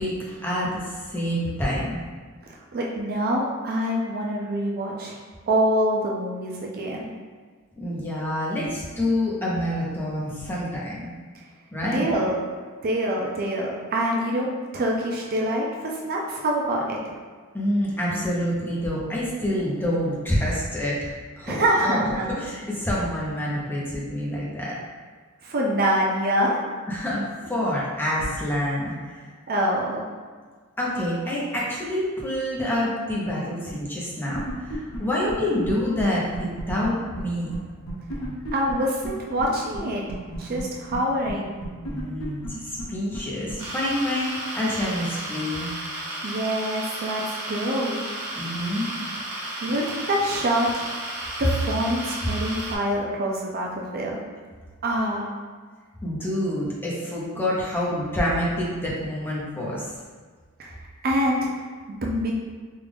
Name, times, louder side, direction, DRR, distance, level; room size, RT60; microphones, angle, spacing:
voice 1, 0.0-2.0 7.8-11.1 11.7-12.1 17.5-24.8 26.9-29.2 30.8-37.5 38.2-38.3 41.9-45.7 48.3-48.9 56.0-59.9, left 1 dB, 10° left, -6 dB, 0.7 m, -27 dB
voice 2, 2.7-5.2 5.5-7.1 11.9-12.4 12.8-17.1 21.5-22.4 25.4-26.6 29.5-30.1 38.5-40.0 40.4-41.6 46.2-48.0 49.6-50.8 51.4-54.2 54.8-55.3 60.6-60.7 61.0-61.5 62.0-62.3, right 1 dB, 45° right, -2 dB, 0.5 m, -25 dB
sound 1, 34.3-35.0 35.3-35.4 35.6-35.7 36.0-36.1 36.3-36.9 37.2-37.3 37.5-37.6 37.9-38.7 39.0-39.1 39.4-39.5 39.7-39.8 40.1-40.6 40.9-41.0 41.3-41.4 41.6-42.5 42.8-42.9 43.1-43.2 43.5-43.6, right 1 dB, 80° left, 0.9 m, -33 dB
sound 2, 43.6-52.8, right 1 dB, 85° right, 0.8 m, -33 dB
3.6 x 2.4 x 3.4 m, 1.5 s
head